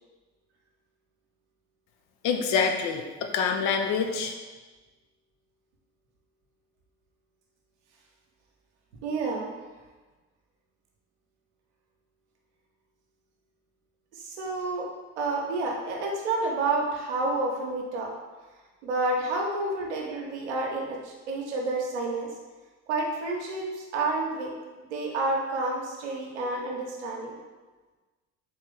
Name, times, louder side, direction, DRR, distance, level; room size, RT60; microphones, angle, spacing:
voice 1, 2.2-4.3, left 5 dB, 60° left, 5 dB, 0.6 m, -26 dB
voice 2, 9.0-9.5 14.1-14.9 15.2-18.1 18.8-22.3 22.9-24.5 24.9-27.3, right 2 dB, 85° right, -1 dB, 0.8 m, -29 dB
3.9 x 3.2 x 3.8 m, 1.3 s
hypercardioid pair, 60°, 33 cm